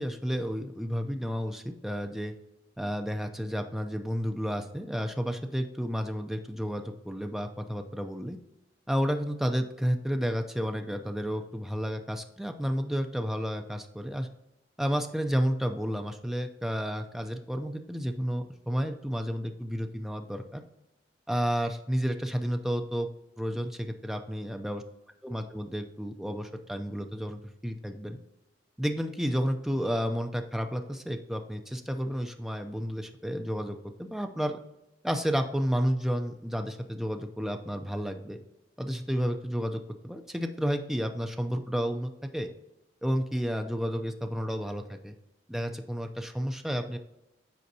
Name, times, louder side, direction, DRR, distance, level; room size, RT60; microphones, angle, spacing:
voice 1, 0.0-2.3 2.8-8.4 8.9-14.3 14.8-20.6 21.3-23.1 23.4-24.8 25.2-28.2 28.8-34.6 35.0-38.4 38.8-42.5 43.0-45.2 45.5-47.0, equal, ahead, 5 dB, 0.4 m, -31 dB
9.3 x 4.4 x 2.7 m, 0.93 s
head